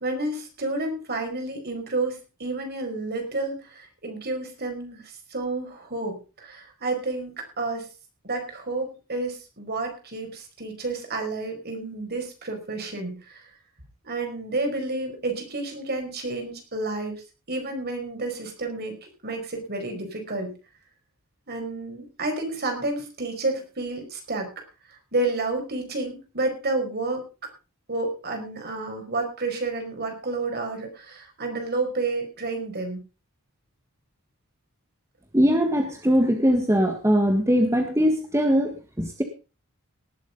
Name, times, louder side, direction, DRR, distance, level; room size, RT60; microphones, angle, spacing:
voice 1, 0.0-5.0 5.3-7.9 8.2-13.4 14.0-17.2 17.5-19.0 19.2-20.5 21.5-24.5 25.1-27.3 27.9-33.0, right 2 dB, 50° right, 4 dB, 5.2 m, -30 dB
voice 2, 35.3-39.2, equal, 15° right, 5 dB, 1.6 m, -21 dB
18.5 x 8.1 x 5.3 m, 0.33 s
head